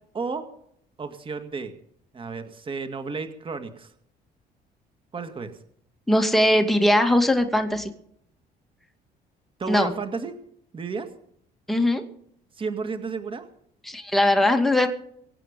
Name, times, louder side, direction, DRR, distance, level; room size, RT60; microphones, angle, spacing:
voice 1, 0.1-0.5 1.0-1.7 2.1-3.9 5.1-5.5 9.6-10.4 10.7-11.1 12.6-13.5, right 4 dB, 30° right, 8 dB, 2.1 m, -32 dB
voice 2, 6.1-7.9 9.7-9.9 11.7-12.0 13.9-14.9, left 1 dB, ahead, 4 dB, 2.4 m, -20 dB
24.5 x 8.6 x 5.3 m, 0.68 s
cardioid pair, 110°, 17 cm